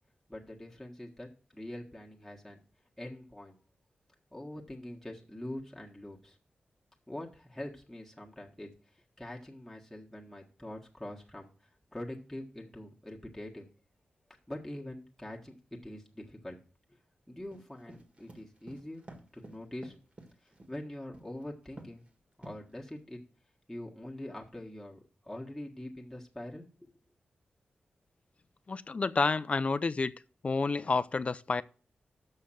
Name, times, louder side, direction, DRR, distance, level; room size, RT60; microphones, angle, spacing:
voice 1, 0.3-2.6 3.0-3.6 4.3-6.4 7.1-8.7 9.2-13.6 14.5-15.6 15.8-16.6 16.9-17.0 17.3-19.0 19.3-19.9 20.4-22.0 22.4-23.2 23.7-26.9, left 1 dB, 5° left, 1.5 m, -44 dB
sound 1, 17.5-20.8 21.1-21.4 21.8-22.1 22.4-23.0, right 1 dB, 40° right, 1.7 m, -50 dB
voice 2, 28.7-30.1 30.4-31.6, left 4 dB, 40° left, 0.4 m, -29 dB
6.6 x 5.7 x 7.3 m
cardioid pair, 75°, 3 cm